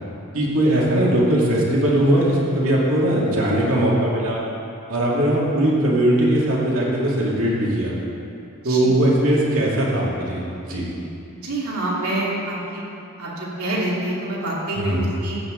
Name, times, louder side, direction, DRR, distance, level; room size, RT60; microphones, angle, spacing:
voice 1, 0.3-4.4 4.9-7.9 8.6-10.9 14.7-15.0, right 1 dB, 65° right, -5 dB, 2.4 m, -20 dB
voice 2, 11.3-12.8 13.2-15.4, right 1 dB, 85° right, -5 dB, 2.6 m, -26 dB
14.0 x 9.0 x 3.8 m, 2.7 s
head